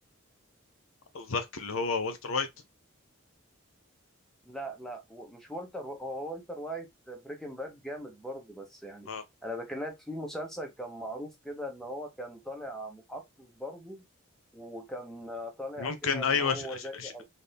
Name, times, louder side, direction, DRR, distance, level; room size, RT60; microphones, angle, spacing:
voice 1, 1.1-2.5 9.1-9.2 15.8-17.1, left 5 dB, 70° left, 0.8 m, -30 dB
voice 2, 4.4-9.1 9.4-14.0 14.5-17.2, equal, ahead, 1.0 m, -40 dB
4.1 x 2.7 x 3.4 m
head